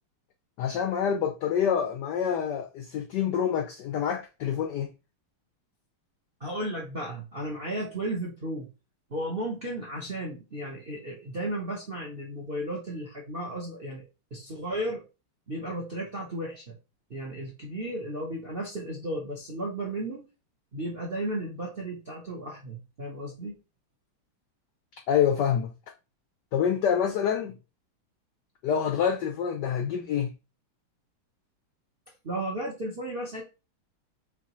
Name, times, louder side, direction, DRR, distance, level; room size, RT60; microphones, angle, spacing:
voice 1, 0.6-4.9 25.1-25.7 26.5-27.5 28.6-30.3, left 8 dB, 80° left, 0.9 m, -26 dB
voice 2, 6.4-8.7 9.1-14.0 14.3-15.0 15.5-16.8 17.1-20.2 20.7-23.6 32.2-33.4, right 1 dB, 55° right, 0.6 m, -34 dB
4.8 x 3.4 x 3.0 m
omnidirectional pair, 2.4 m